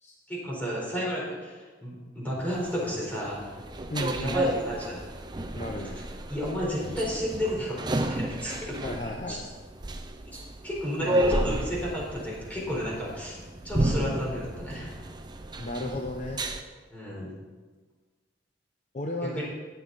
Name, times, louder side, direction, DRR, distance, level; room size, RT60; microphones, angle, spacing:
voice 1, 0.3-3.5 4.2-5.0 6.3-8.7 9.3-9.4 10.6-13.4 13.6-14.9 16.9-17.3 19.2-19.4, equal, 10° left, -5 dB, 4.1 m, -32 dB
sound 1, 2.4-16.6, right 1 dB, 20° right, 0.6 m, -32 dB
voice 2, 3.9-4.6 5.5-6.1 8.8-9.5 11.0-11.9 15.6-16.4 18.9-19.4, left 1 dB, 35° left, 1 dB, 0.8 m, -34 dB
19.5 x 6.9 x 4.2 m, 1.4 s
head